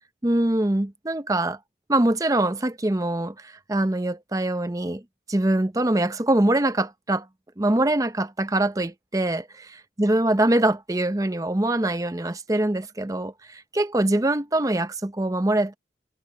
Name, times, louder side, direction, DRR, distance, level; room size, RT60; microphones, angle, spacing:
voice 1, 0.2-1.6 1.9-5.0 5.3-7.3 7.6-9.4 10.0-15.7, right 1 dB, 20° right, 0.7 m, -23 dB
head